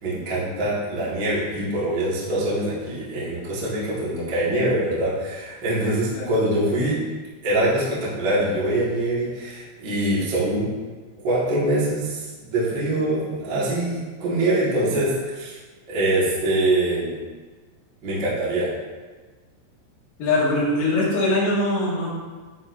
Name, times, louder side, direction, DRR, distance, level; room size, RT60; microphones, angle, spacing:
voice 1, 0.0-7.0 7.4-10.7 11.2-15.6 15.9-17.1 18.0-18.7, right 1 dB, 75° right, -9 dB, 1.0 m, -24 dB
voice 2, 20.2-22.1, left 2 dB, 65° left, -5 dB, 2.9 m, -22 dB
11.5 x 4.4 x 2.7 m, 1.4 s
omnidirectional pair, 5.8 m